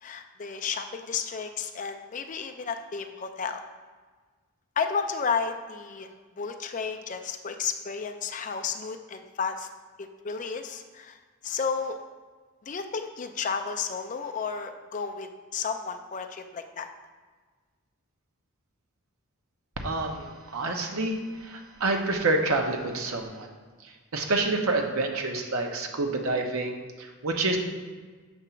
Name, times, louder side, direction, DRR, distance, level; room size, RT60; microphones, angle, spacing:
voice 1, 0.0-3.6 4.8-9.7 10.0-11.2 11.4-12.0 12.6-16.9, left 5 dB, 35° left, 7 dB, 0.4 m, -32 dB
voice 2, 19.8-23.5 23.8-27.6, right 2 dB, 70° right, 3 dB, 0.8 m, -28 dB
7.0 x 3.0 x 5.7 m, 1.4 s
head